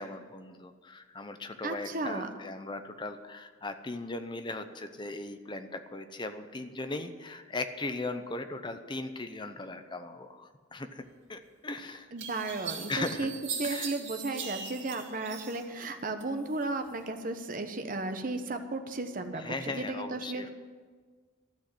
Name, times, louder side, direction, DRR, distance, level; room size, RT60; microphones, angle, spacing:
voice 1, 0.0-12.1 12.9-13.3 13.6-13.9 14.4-14.5 19.4-20.5, left 2 dB, 25° left, 8 dB, 0.7 m, -38 dB
voice 2, 1.6-2.3 12.1-13.3 13.6-20.5, right 2 dB, 45° right, 6 dB, 1.0 m, -34 dB
sound 1, 11.5-11.6 12.2-15.9 16.2-17.0, right 6 dB, 75° right, 2.3 m, -40 dB
13.0 x 6.4 x 9.9 m, 1.5 s
head